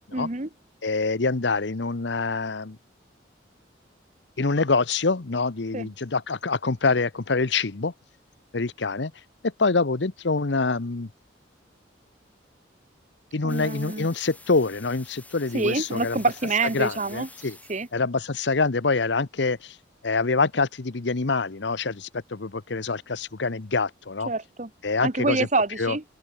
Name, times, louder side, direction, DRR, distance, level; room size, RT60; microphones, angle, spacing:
voice 1, 0.1-0.5 5.7-5.9 13.4-14.1 15.5-17.3 17.7-17.9 24.3-24.7 25.0-26.0, right 3 dB, 40° right, 1.3 m, -26 dB
voice 2, 0.8-2.8 4.4-7.9 8.5-9.1 9.4-11.1 13.3-16.2 16.7-17.6 17.9-19.8 20.0-24.3 24.8-25.5 25.8-26.0, left 3 dB, 65° left, 0.9 m, -25 dB
sound 1, 13.5-17.9, left 3 dB, 10° left, 2.1 m, -48 dB
open air
head